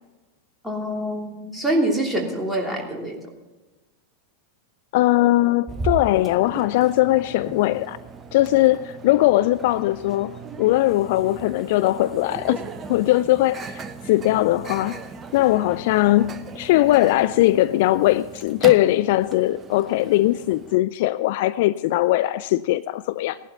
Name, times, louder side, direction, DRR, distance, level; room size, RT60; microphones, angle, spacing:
voice 1, 0.6-3.3, right 1 dB, ahead, 3.0 m, -25 dB
voice 2, 4.9-8.0 8.3-10.3 10.6-15.0 15.3-23.4, left 16 dB, 50° left, 0.3 m, -20 dB
Microwave oven, 5.7-20.8, right 4 dB, 20° right, 1.0 m, -37 dB
17.5 x 11.5 x 4.0 m
figure-of-eight pair, 90°, 0 cm